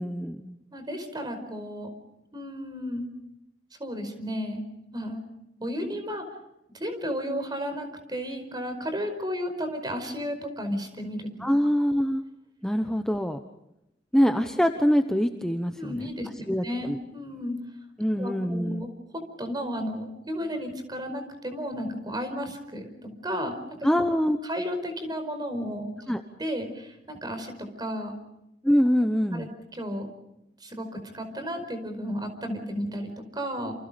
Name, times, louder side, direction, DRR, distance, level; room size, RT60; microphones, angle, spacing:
voice 1, 0.0-0.5 11.4-12.2 12.6-13.4 14.1-16.1 16.5-17.0 18.0-18.8 23.8-24.4 26.1-26.2 28.6-29.5, equal, 5° left, 5 dB, 1.0 m, -24 dB
voice 2, 0.7-1.9 2.3-3.1 3.8-4.6 4.9-5.2 5.6-6.3 6.7-11.3 15.8-17.6 18.2-23.6 24.4-25.9 26.4-28.2 29.3-30.1 30.6-33.7, equal, 25° right, 7 dB, 5.0 m, -33 dB
29.0 x 28.5 x 5.2 m, 0.86 s
head